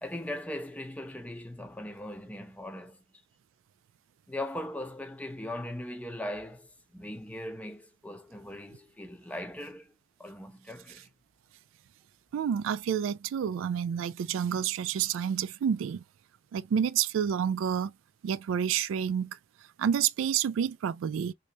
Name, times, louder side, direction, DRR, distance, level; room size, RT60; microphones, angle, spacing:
voice 1, 0.0-3.0 4.3-9.9 10.2-11.1, left 1 dB, 5° left, 0.6 m, -39 dB
voice 2, 12.3-16.0 16.5-17.9 18.2-19.4 19.8-21.3, right 8 dB, 90° right, 0.3 m, -29 dB
3.3 x 2.7 x 2.9 m
head